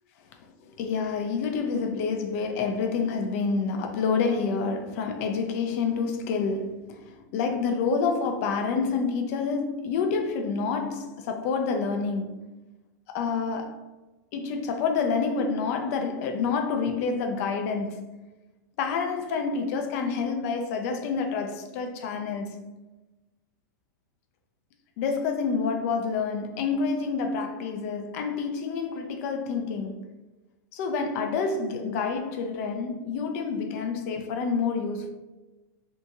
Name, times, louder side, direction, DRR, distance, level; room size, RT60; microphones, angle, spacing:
voice 1, 0.4-12.5 13.1-13.9 14.3-18.2 18.8-22.7 25.0-30.0 30.7-35.1, left 5 dB, 50° left, 0.4 m, -28 dB
2.7 x 2.3 x 2.7 m
hypercardioid pair, 140°, 10 cm